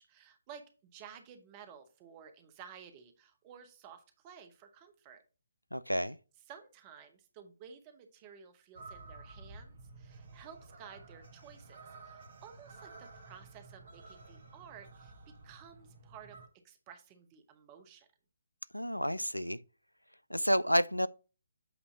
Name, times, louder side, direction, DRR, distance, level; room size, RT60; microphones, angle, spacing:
voice 1, 0.0-5.2 6.5-15.1 15.4-16.4 16.6-18.1, right 7 dB, 25° right, 0.8 m, -54 dB
voice 2, 5.7-6.2 18.7-19.6 20.3-21.1, equal, 90° left, 0.4 m, -30 dB
sound 1, 8.8-16.5, right 3 dB, 50° right, 1.1 m, -52 dB
8.0 x 2.7 x 5.6 m
figure-of-eight pair, 140°, 0 cm